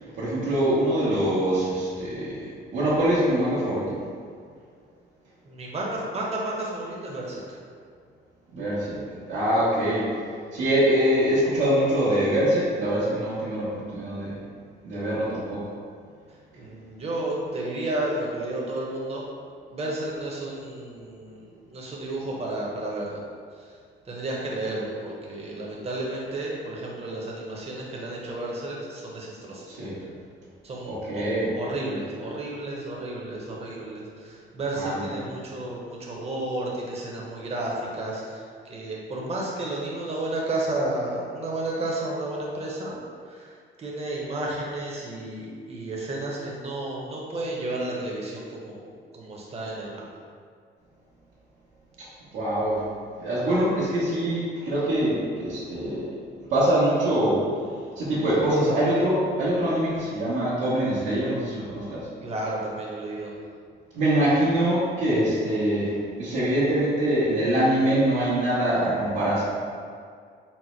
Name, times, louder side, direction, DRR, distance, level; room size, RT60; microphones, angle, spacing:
voice 1, 0.2-2.4 2.7-4.0 8.5-9.0 9.3-10.1 10.5-14.3 14.8-15.7 29.7-30.0 30.8-31.5 34.7-35.3 52.3-52.8 53.2-56.1 56.5-57.4 58.0-62.1 63.9-69.4, right 1 dB, 85° right, -11 dB, 1.1 m, -24 dB
voice 2, 5.4-7.6 16.5-19.3 19.7-23.2 23.6-23.7 24.1-29.8 30.6-31.2 31.5-38.4 38.7-43.0 43.3-50.0 62.2-63.3, right 2 dB, 30° right, -3 dB, 0.8 m, -32 dB
4.2 x 2.1 x 4.4 m, 2.1 s
cardioid pair, 90°, 20 cm